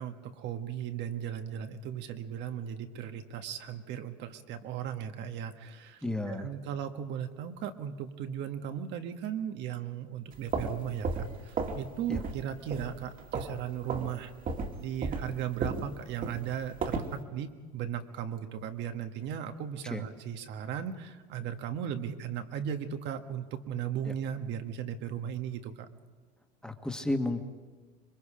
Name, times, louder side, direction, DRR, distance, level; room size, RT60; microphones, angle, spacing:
voice 1, 0.0-14.3 14.8-25.9, right 9 dB, 55° right, 7 dB, 1.6 m, -37 dB
voice 2, 6.0-6.5 12.1-12.2 19.9-20.0 24.1-24.2 26.6-27.4, left 2 dB, 5° left, 5 dB, 1.7 m, -32 dB
sound 1, 10.3-11.9 12.1-12.4 12.7-13.6 13.9-14.1 14.5-17.2, right 4 dB, 40° right, 2.2 m, -34 dB
26.5 x 22.0 x 5.1 m, 1.4 s
supercardioid pair, 115°, 21 cm